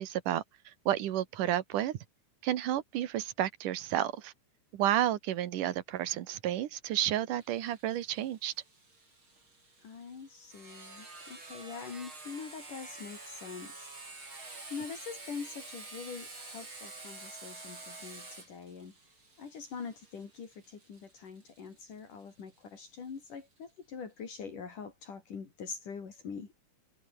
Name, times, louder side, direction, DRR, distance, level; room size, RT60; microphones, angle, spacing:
voice 1, 0.0-2.0 2.4-4.3 4.7-8.5, right 12 dB, 75° right, 2.9 m, -31 dB
Sawing, 7.4-22.8, right 3 dB, 35° right, 8.0 m, -49 dB
voice 2, 9.8-13.9 14.7-18.9 19.4-26.5, left 5 dB, 70° left, 5.5 m, -44 dB
omnidirectional pair, 3.8 m